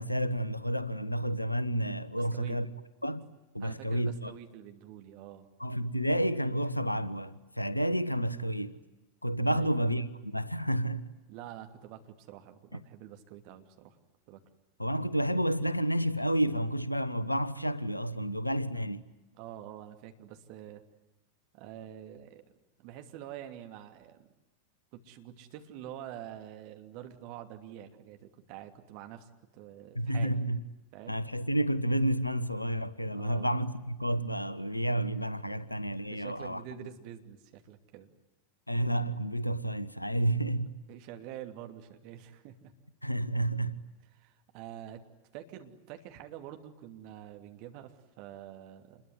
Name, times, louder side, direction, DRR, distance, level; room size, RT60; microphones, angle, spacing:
voice 1, 0.0-2.7 3.0-3.3 3.5-4.3 5.6-8.8 9.2-11.0 12.7-12.8 14.8-19.0 29.9-30.6 31.1-36.9 38.7-40.7 43.0-43.8, right 1 dB, 85° left, 1.1 m, -30 dB
voice 2, 2.2-2.6 3.6-5.5 9.5-9.8 11.3-14.0 14.3-14.4 19.4-20.8 21.5-22.4 22.8-24.3 24.9-30.4 30.9-31.2 33.1-33.5 35.5-35.6 36.1-38.1 40.9-42.7 44.1-45.0 45.3-49.0, right 11 dB, 45° right, 2.8 m, -46 dB
27.5 x 22.0 x 9.5 m
figure-of-eight pair, 90°, 0 cm